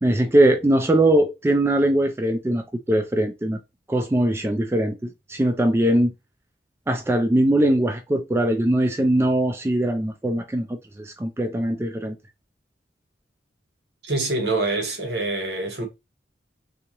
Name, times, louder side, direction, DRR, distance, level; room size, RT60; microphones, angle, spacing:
voice 1, 0.0-3.6 3.9-6.1 6.9-12.2, right 1 dB, 15° right, 0.4 m, -21 dB
voice 2, 14.0-15.8, right 2 dB, 65° right, 1.3 m, -25 dB
3.5 x 2.9 x 2.9 m
head